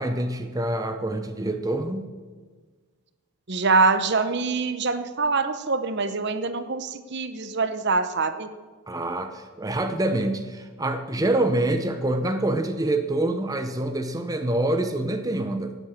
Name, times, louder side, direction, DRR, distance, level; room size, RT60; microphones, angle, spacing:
voice 1, 0.0-2.1 8.9-15.8, right 1 dB, 15° right, 6 dB, 0.7 m, -26 dB
voice 2, 3.5-8.5, right 4 dB, 50° right, 11 dB, 0.9 m, -24 dB
17.5 x 8.1 x 7.4 m, 1.5 s
head